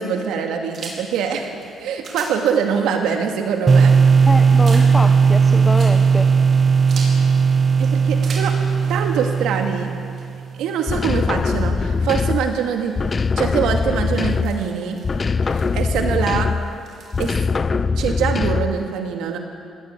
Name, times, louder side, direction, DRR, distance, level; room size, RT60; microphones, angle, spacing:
voice 1, 0.0-1.5 1.8-3.9 7.8-8.5 8.9-9.9 10.6-12.9 13.4-15.0 15.4-16.5 17.2-17.3 18.0-19.4, right 7 dB, 90° right, 3 dB, 2.4 m, -23 dB
sound 1, 0.7-17.3, right 3 dB, 55° right, 4.7 m, -42 dB
sound 2, 3.7-10.5, right 5 dB, 35° right, 0.4 m, -16 dB
voice 2, 4.3-6.3, left 1 dB, 10° left, 5 dB, 1.2 m, -25 dB
sound 3, 10.9-12.6 12.9-14.7 15.0-16.8 17.1-18.8, left 4 dB, 35° left, 0.6 m, -22 dB
20.0 x 18.0 x 8.5 m, 2.4 s
cardioid pair, 90°, 0 cm